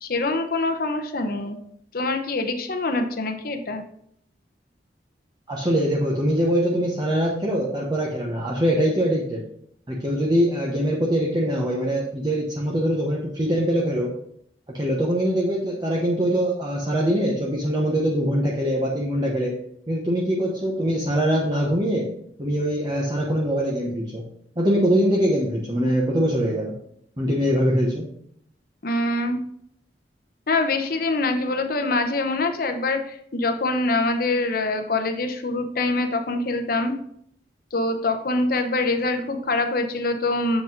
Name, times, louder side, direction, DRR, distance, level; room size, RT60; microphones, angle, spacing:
voice 1, 0.0-1.6 1.9-3.8 28.8-29.4 30.5-36.9 37.7-40.6, left 2 dB, 55° left, 6 dB, 0.8 m, -24 dB
voice 2, 5.5-9.4 9.9-14.1 14.7-19.5 19.9-22.1 22.4-24.2 24.6-26.7 27.2-28.1, equal, 25° right, -4 dB, 1.0 m, -23 dB
7.6 x 5.0 x 3.9 m, 0.69 s
head